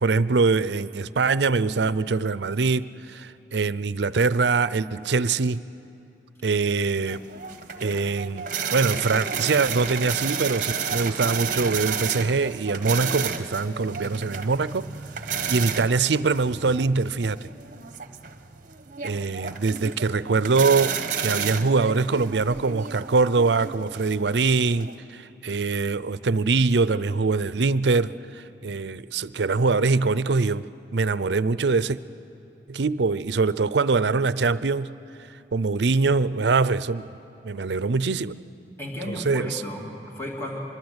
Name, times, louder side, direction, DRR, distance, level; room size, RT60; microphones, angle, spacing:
voice 1, 0.0-5.6 6.4-7.2 7.8-14.9 15.5-17.4 19.0-30.6 30.9-32.0 32.7-34.9 35.5-37.1 37.4-38.3 39.1-39.6, right 4 dB, 85° right, 16 dB, 0.6 m, -23 dB
sound 1, 7.1-24.9, right 6 dB, 45° right, 1.1 m, -32 dB
voice 2, 38.8-40.6, left 1 dB, 15° left, -2 dB, 2.9 m, -34 dB
25.0 x 22.5 x 8.1 m, 2.8 s
head